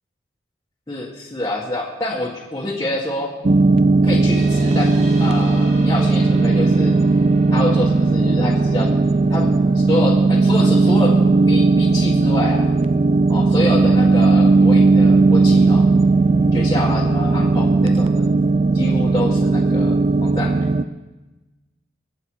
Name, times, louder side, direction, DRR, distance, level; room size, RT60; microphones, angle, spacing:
voice 1, 0.9-3.3 4.0-4.9 5.2-7.0 7.5-8.9 9.3-12.6 13.3-15.9 16.5-18.3 18.7-20.0 20.2-20.5, left 1 dB, 20° left, -6 dB, 1.7 m, -26 dB
sound 1, 3.4-20.8, right 3 dB, 35° right, 0.4 m, -16 dB
sound 2, 4.3-15.2, equal, 55° right, 5.1 m, -38 dB
21.0 x 7.8 x 4.8 m, 1.1 s
head